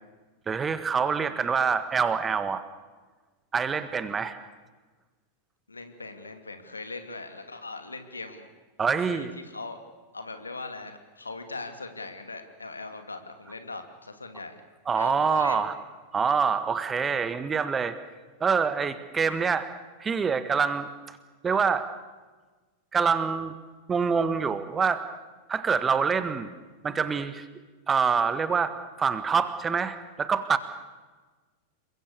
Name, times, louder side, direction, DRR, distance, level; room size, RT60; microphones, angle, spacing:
voice 1, 0.5-2.6 3.5-4.4 8.8-9.3 14.9-15.7 16.1-17.9 18.4-19.7 20.0-21.2 21.4-21.9 22.9-23.5 23.9-25.0 25.5-26.5 26.8-27.5 27.9-30.6, right 6 dB, 20° right, 12 dB, 1.6 m, -26 dB
voice 2, 1.2-1.7 3.8-4.0 5.7-8.5 9.1-9.8 10.1-14.6 15.0-15.7, left 3 dB, 80° left, 7 dB, 2.5 m, -40 dB
28.0 x 23.0 x 6.9 m, 1.3 s
figure-of-eight pair, 90°, 0 cm